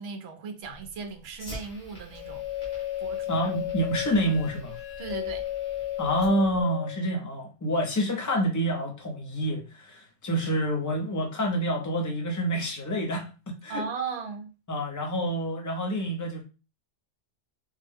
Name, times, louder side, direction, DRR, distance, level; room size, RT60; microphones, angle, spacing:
voice 1, 0.0-2.4 3.0-3.3 5.0-5.4 13.7-14.5, right 5 dB, 60° right, 0.9 m, -36 dB
Fire, 0.6-6.6, right 1 dB, 40° left, 1.6 m, -47 dB
sound 1, 2.1-7.1, left 13 dB, 75° left, 1.1 m, -33 dB
voice 2, 3.3-4.8 6.0-13.8 14.7-16.4, equal, 20° left, 0.5 m, -28 dB
3.7 x 2.2 x 3.3 m
omnidirectional pair, 1.3 m